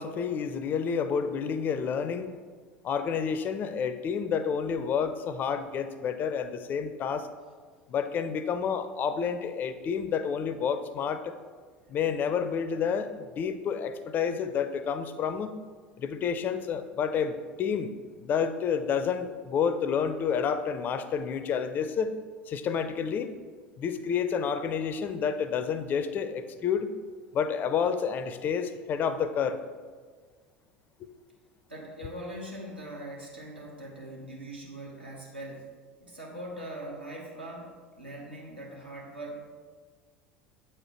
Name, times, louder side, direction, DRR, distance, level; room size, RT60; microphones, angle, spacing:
voice 1, 0.0-2.3 2.8-7.3 7.9-11.3 11.9-15.6 16.0-17.9 18.2-22.1 22.5-23.3 23.8-26.9 27.3-29.6, left 7 dB, 35° left, 11 dB, 0.4 m, -29 dB
voice 2, 31.7-35.7 36.0-39.5, right 1 dB, 85° right, -3 dB, 1.1 m, -41 dB
7.6 x 4.4 x 3.1 m, 1.5 s
figure-of-eight pair, 70°, 6 cm